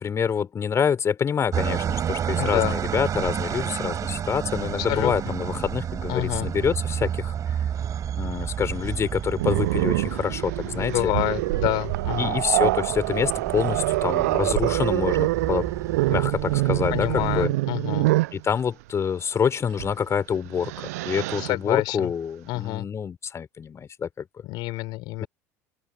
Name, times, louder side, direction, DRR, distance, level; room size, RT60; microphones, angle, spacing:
voice 1, 0.0-7.3 8.2-11.1 12.2-15.7 16.1-17.5 18.3-24.2 25.2-25.3, left 7 dB, 35° left, 4.6 m, -26 dB
sound 1, 1.5-17.5, right 9 dB, 40° right, 5.7 m, -31 dB
voice 2, 2.3-2.7 4.9-5.1 6.1-6.5 10.7-12.4 16.9-18.1 21.4-22.1 22.5-22.9 24.4-25.3, left 21 dB, 60° left, 4.8 m, -28 dB
Growling, 9.4-18.4 19.7-19.9 20.4-21.5, right 20 dB, 70° right, 0.5 m, -25 dB
open air
figure-of-eight pair, 70°, 9 cm